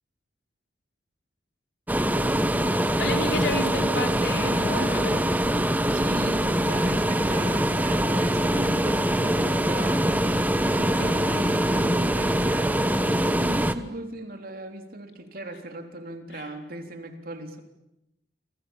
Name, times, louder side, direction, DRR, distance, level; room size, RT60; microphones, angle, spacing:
sound 1, 1.9-13.7, right 1 dB, 10° right, 1.2 m, -23 dB
voice 1, 3.0-5.3 11.0-11.1 16.3-16.5, left 2 dB, 65° left, 4 dB, 4.2 m, -31 dB
voice 2, 5.9-17.6, right 1 dB, 55° right, 5 dB, 3.6 m, -38 dB
29.0 x 26.5 x 7.2 m, 0.86 s
head